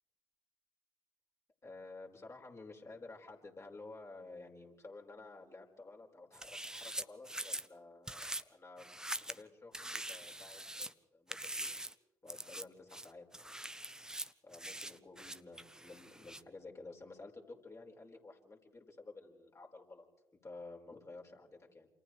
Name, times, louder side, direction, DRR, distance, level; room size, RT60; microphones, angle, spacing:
voice 1, 1.6-8.9 9.3-11.7 12.2-13.3 14.4-20.0 20.4-21.9, left 3 dB, 30° left, 0 dB, 5.2 m, -52 dB
sound 1, 6.3-7.7 8.1-8.4 8.8-9.4 9.7-10.9 11.3-11.9 12.3-12.6 12.9-16.4, right 1 dB, 5° right, 0.9 m, -43 dB
28.5 x 28.0 x 3.3 m, 1.0 s
figure-of-eight pair, 45°, 9 cm